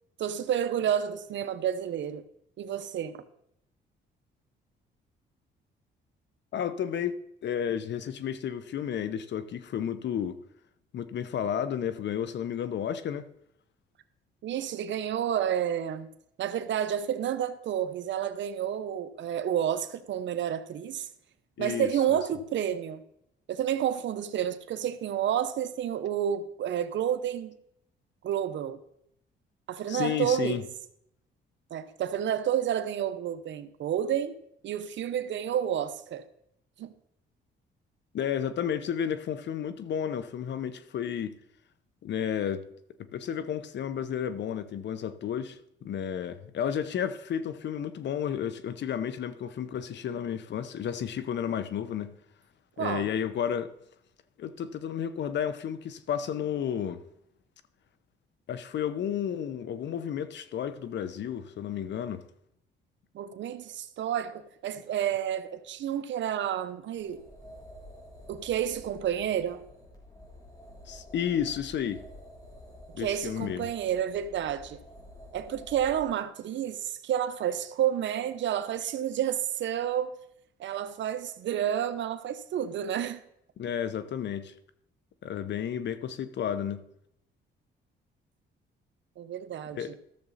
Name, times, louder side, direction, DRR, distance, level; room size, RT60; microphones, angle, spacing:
voice 1, 0.2-2.2 2.6-3.2 14.4-16.1 16.4-21.1 21.6-23.0 23.5-27.5 28.2-28.8 29.7-30.6 31.7-34.4 34.6-36.2 36.8-36.9 52.8-53.1 63.1-67.2 68.3-69.6 73.0-74.8 75.3-80.1 80.6-83.2 89.2-89.9, right 10 dB, 65° right, 0.9 m, -30 dB
voice 2, 6.5-10.4 10.9-13.3 21.6-22.2 29.9-30.6 38.1-41.4 42.0-42.7 43.0-52.1 52.8-53.7 54.4-57.0 58.5-62.3 70.9-72.0 72.9-73.7 83.6-84.5 85.2-86.8 89.7-89.9, left 9 dB, 65° left, 0.8 m, -32 dB
sound 1, 66.9-76.1, left 1 dB, 20° left, 3.3 m, -50 dB
14.0 x 6.9 x 4.1 m
cardioid pair, 90°, 20 cm